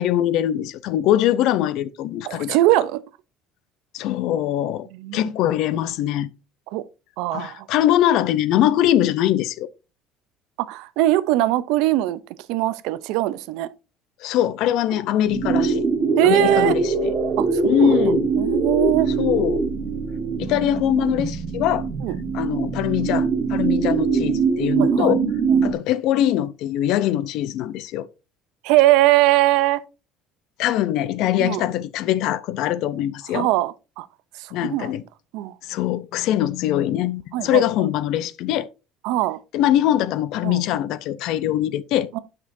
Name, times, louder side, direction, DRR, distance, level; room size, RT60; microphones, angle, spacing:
voice 1, 0.0-2.6 3.9-4.9 5.1-6.3 7.3-9.7 14.2-15.9 16.2-17.1 17.6-18.3 19.2-19.6 20.4-21.9 22.3-25.2 25.6-28.1 30.6-33.5 34.5-35.0 35.6-38.7 39.5-42.1, left 12 dB, 55° left, 0.5 m, -22 dB
voice 2, 2.2-3.0 4.9-5.3 6.7-6.8 7.2-7.7 10.6-12.2 12.5-13.7 16.2-16.7 17.4-19.1 22.0-22.2 24.8-25.1 25.5-25.7 28.6-29.8 31.4-31.6 33.3-34.1 34.4-34.9 35.3-35.5 37.3-37.6 39.0-39.4 40.4-40.6 42.1-42.2, right 16 dB, 75° right, 0.5 m, -21 dB
sound 1, 15.2-25.7, right 4 dB, 30° right, 1.1 m, -22 dB
9.7 x 6.0 x 2.6 m
cardioid pair, 175°, 0 cm